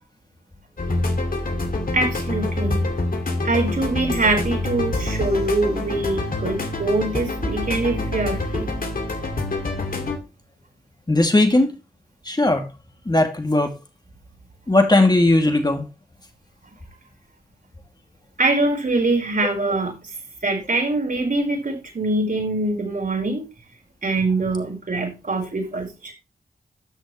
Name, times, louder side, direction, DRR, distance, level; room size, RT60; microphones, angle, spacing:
sound 1, 0.8-10.2, left 2 dB, 60° left, 2.5 m, -26 dB
voice 1, 1.9-2.8 3.4-8.7 18.4-20.1 20.4-23.4 24.0-26.1, right 2 dB, 55° right, 4.7 m, -23 dB
voice 2, 11.1-11.8 12.3-12.6 13.1-13.7 14.7-15.8, left 2 dB, 25° left, 2.5 m, -17 dB
13.5 x 6.3 x 3.2 m
cardioid pair, 50°, 17 cm